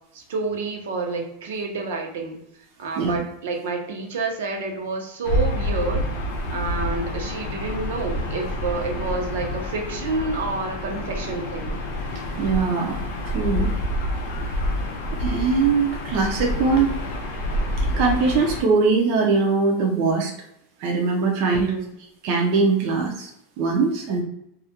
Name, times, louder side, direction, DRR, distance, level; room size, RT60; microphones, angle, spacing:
voice 1, 0.1-2.4 2.8-6.0 6.5-11.8 21.3-21.9, right 3 dB, 80° right, 2 dB, 0.6 m, -29 dB
Gull seagull / Ocean, 5.2-18.6, left 1 dB, 65° left, 0.5 m, -28 dB
voice 2, 12.1-13.0 13.2-13.7 15.2-16.9 18.0-20.3 20.8-21.7 22.2-23.3 23.6-24.2, right 4 dB, 40° right, 0 dB, 0.4 m, -21 dB
2.3 x 2.1 x 2.7 m, 0.78 s
supercardioid pair, 180°, 0 cm